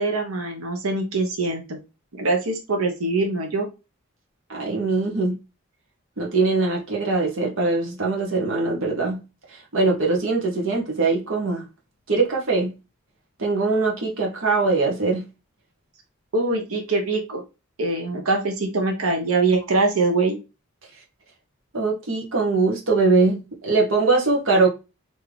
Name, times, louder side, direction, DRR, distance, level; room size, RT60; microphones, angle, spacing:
voice 1, 0.0-1.8 2.2-3.7 16.3-17.4 17.8-20.4, right 3 dB, 85° right, 1.0 m, -23 dB
voice 2, 4.5-5.3 6.2-9.2 9.7-11.6 12.1-12.7 13.4-15.2 21.7-24.7, right 3 dB, 60° right, 1.0 m, -22 dB
3.6 x 2.7 x 3.2 m
head